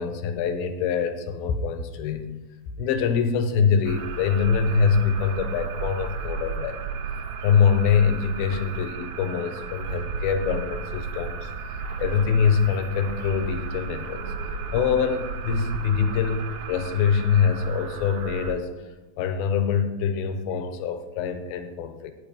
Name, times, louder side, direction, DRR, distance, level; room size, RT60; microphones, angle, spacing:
voice 1, 0.0-2.3 2.8-6.8 7.4-11.5 12.0-18.7 19.2-22.1, left 6 dB, 80° left, 8 dB, 2.6 m, -24 dB
sound 1, 3.8-18.5, right 5 dB, 55° right, 1.9 m, -33 dB
12.0 x 9.5 x 5.3 m, 1.1 s
omnidirectional pair, 4.4 m